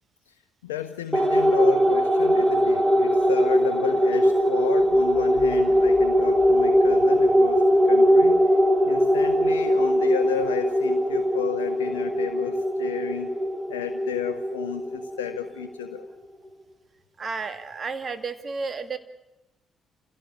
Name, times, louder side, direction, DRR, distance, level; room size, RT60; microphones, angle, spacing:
voice 1, 0.6-8.6 8.8-13.3 13.7-16.1, left 10 dB, 85° left, 9 dB, 0.7 m, -33 dB
sound 1, 1.1-15.9, equal, 10° right, 2.2 m, -21 dB
voice 2, 17.2-19.0, right 4 dB, 45° right, 10 dB, 2.1 m, -32 dB
28.0 x 16.5 x 8.4 m, 0.98 s
hypercardioid pair, 45°, 0 cm